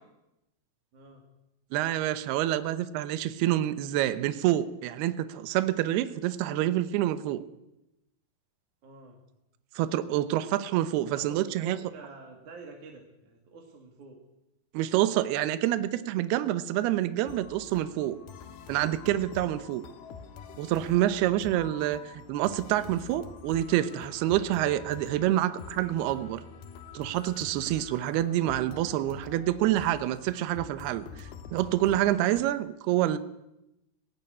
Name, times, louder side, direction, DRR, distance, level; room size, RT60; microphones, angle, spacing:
voice 1, 0.9-1.2 8.8-9.2 11.1-14.2 19.4-19.7 20.9-21.4, right 3 dB, 50° right, 1 dB, 3.5 m, -48 dB
voice 2, 1.7-7.4 9.8-11.8 14.7-18.2 18.7-19.8 20.6-26.4 26.9-33.2, right 13 dB, 75° right, 12 dB, 2.8 m, -27 dB
sound 1, 17.3-32.4, left 6 dB, 70° left, 3.3 m, -46 dB
19.0 x 17.0 x 9.7 m, 0.89 s
omnidirectional pair, 4.9 m